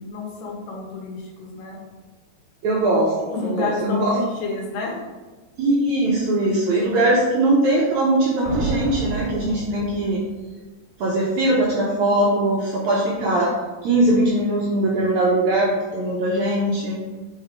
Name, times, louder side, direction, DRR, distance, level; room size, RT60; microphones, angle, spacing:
voice 1, 0.0-1.8 3.3-5.0, left 3 dB, 90° left, -2 dB, 3.7 m, -30 dB
voice 2, 2.6-4.2 5.6-10.2 11.0-13.5 13.8-17.0, right 1 dB, 70° right, -5 dB, 1.8 m, -20 dB
sound 1, 8.4-10.4, right 3 dB, 90° right, 3.1 m, -30 dB
7.9 x 3.9 x 4.6 m, 1.2 s
omnidirectional pair, 4.5 m